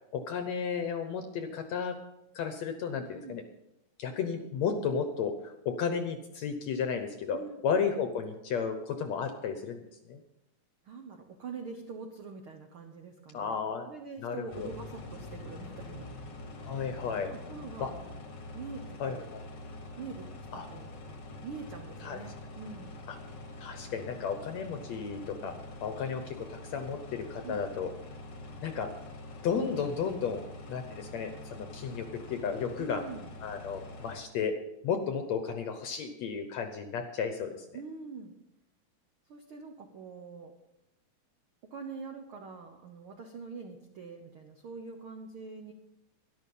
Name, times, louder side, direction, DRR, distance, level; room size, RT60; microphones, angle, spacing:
voice 1, 0.1-2.0 2.4-3.4 4.0-7.4 7.6-10.2 13.3-13.9 14.2-14.7 16.7-17.3 17.8-17.9 19.0-19.4 20.5-20.7 22.0-22.2 23.1-23.2 23.6-25.5 25.8-27.9 28.6-28.9 29.4-30.4 30.7-33.0 33.4-34.6 34.8-37.7, left 6 dB, 70° left, 7 dB, 1.8 m, -33 dB
voice 2, 10.8-16.2 16.7-16.8 17.3-17.9 18.5-19.3 20.0-20.3 20.5-22.9 25.4-25.6 27.4-27.6 32.8-33.3 37.7-38.3 39.3-40.5 41.7-45.7, right 5 dB, 75° right, 4 dB, 1.2 m, -44 dB
sound 1, 14.5-34.2, left 2 dB, 50° left, 1.4 m, -45 dB
12.5 x 11.5 x 5.5 m, 0.88 s
omnidirectional pair, 4.0 m